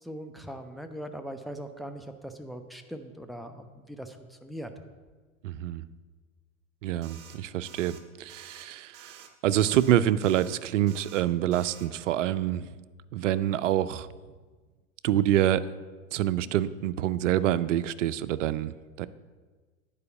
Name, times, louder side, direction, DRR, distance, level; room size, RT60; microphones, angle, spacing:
voice 1, 0.0-4.7, equal, ahead, 6 dB, 0.4 m, -40 dB
voice 2, 5.4-5.8 6.8-12.7 13.1-14.1 15.0-15.6 16.1-19.1, right 12 dB, 65° right, 14 dB, 0.5 m, -26 dB
sound 1, 7.0-7.4 7.7-8.0 8.3-8.7 8.9-9.3 9.6-9.9 10.2-10.6 10.9-11.2 11.5-11.9, right 8 dB, 40° right, 1.1 m, -50 dB
9.4 x 4.9 x 7.0 m, 1.4 s
hypercardioid pair, 90°, 40 cm